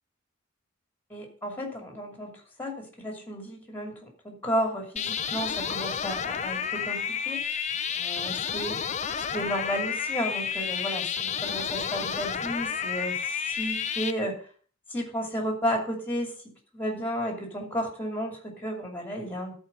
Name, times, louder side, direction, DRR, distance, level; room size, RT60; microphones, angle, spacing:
voice 1, 1.1-7.4 8.0-8.8 9.3-14.4 14.9-16.3 16.7-19.5, equal, 10° left, 1 dB, 2.6 m, -33 dB
sound 1, 5.0-14.1, left 7 dB, 35° left, 0.5 m, -31 dB
13.0 x 4.5 x 5.5 m, 0.44 s
head